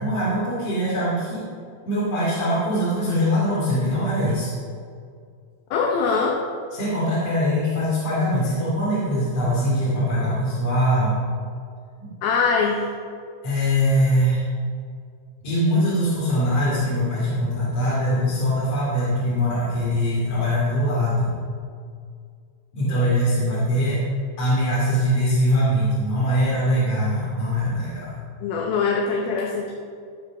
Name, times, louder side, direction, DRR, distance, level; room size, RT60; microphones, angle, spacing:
voice 1, 0.0-1.5 1.8-4.5 6.7-11.2 12.0-12.1 13.4-14.4 15.4-21.3 22.7-24.0 24.4-28.2, equal, 40° left, -10 dB, 3.0 m, -22 dB
voice 2, 5.7-6.4 12.2-12.8 28.4-29.7, left 5 dB, 75° left, 0 dB, 2.4 m, -22 dB
14.5 x 5.2 x 5.9 m, 2.2 s
omnidirectional pair, 5.1 m